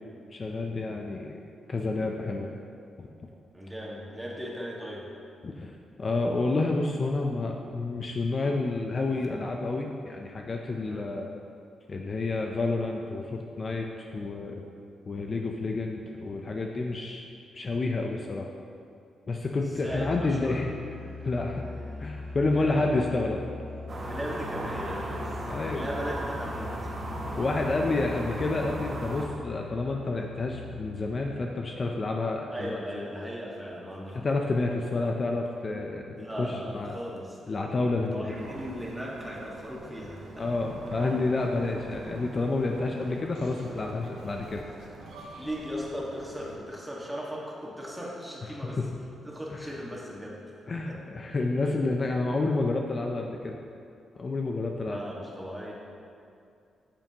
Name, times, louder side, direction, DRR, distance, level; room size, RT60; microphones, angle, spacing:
voice 1, 0.3-1.4 1.7-2.5 3.0-3.1 5.4-5.7 6.0-11.3 11.9-14.6 15.1-17.2 17.5-18.5 19.3-20.7 21.2-21.7 22.0-23.4 25.5-25.8 27.4-32.8 34.1-37.0 37.5-38.5 40.4-44.7 48.6-48.9 49.5-49.7 50.7-53.6 54.2-55.0, left 3 dB, 40° left, 1 dB, 0.5 m, -29 dB
voice 2, 3.5-5.1 10.8-11.1 19.8-20.6 22.5-22.9 24.1-26.9 32.5-34.3 36.2-37.4 38.0-40.4 45.4-48.8 49.2-50.4 50.9-51.0 54.9-55.7, equal, 10° right, -4 dB, 1.6 m, -37 dB
Musical instrument, 19.8-31.5, left 4 dB, 65° right, 1.7 m, -41 dB
sound 1, 23.9-29.3, right 2 dB, 40° right, 1.2 m, -36 dB
sound 2, 38.3-46.5, right 2 dB, 85° right, 1.1 m, -45 dB
8.8 x 7.3 x 2.9 m, 2.5 s
cardioid pair, 95°, 0 cm